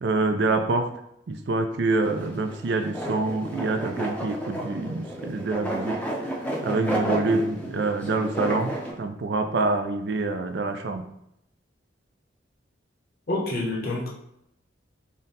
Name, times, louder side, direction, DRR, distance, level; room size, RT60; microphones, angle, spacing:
voice 1, 0.0-0.9 1.3-6.0 6.2-6.3 6.6-11.0, right 3 dB, 65° right, 7 dB, 0.4 m, -26 dB
sound 1, 2.0-8.9, right 1 dB, 10° left, 0.6 m, -31 dB
voice 2, 13.3-14.1, left 2 dB, 55° left, -3 dB, 0.9 m, -27 dB
3.9 x 2.2 x 4.0 m, 0.78 s
head